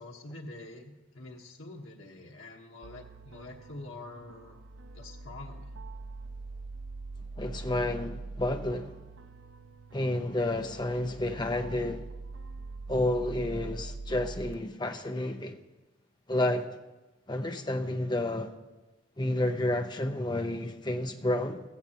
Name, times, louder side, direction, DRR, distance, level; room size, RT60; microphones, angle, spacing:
voice 1, 0.0-4.6 4.9-5.7, left 2 dB, 85° left, 1.3 m, -46 dB
sound 1, 2.8-14.5, right 3 dB, 70° right, 0.5 m, -43 dB
voice 2, 7.4-9.0 9.9-12.0 12.9-15.6 16.3-16.7 17.3-18.5 19.2-21.6, left 1 dB, 20° left, 0.7 m, -30 dB
15.5 x 15.5 x 3.0 m
head